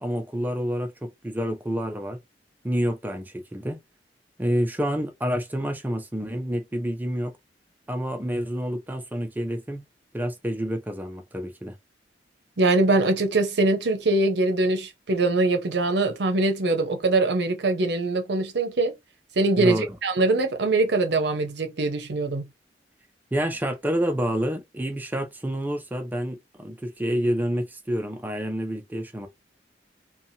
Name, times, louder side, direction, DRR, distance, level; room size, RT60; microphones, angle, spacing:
voice 1, 0.0-2.2 2.6-3.8 4.4-7.3 7.9-9.9 10.1-11.7 19.6-19.9 23.3-29.3, equal, 10° right, 0.5 m, -28 dB
voice 2, 12.6-18.9 19.4-22.5, right 2 dB, 70° right, 0.6 m, -23 dB
2.8 x 2.2 x 2.7 m
head